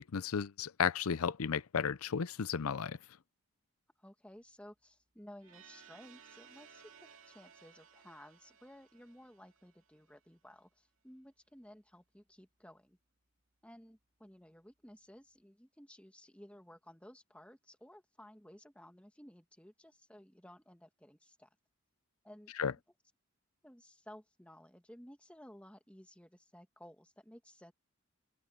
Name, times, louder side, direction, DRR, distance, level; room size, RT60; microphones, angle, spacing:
voice 1, 0.0-3.0 22.6-22.7, left 6 dB, 85° left, 0.6 m, -34 dB
voice 2, 4.0-13.0 13.6-21.5 22.2-22.5 23.6-27.7, equal, 5° left, 1.9 m, -56 dB
sound 1, 5.4-10.2, right 7 dB, 65° right, 2.4 m, -60 dB
open air
head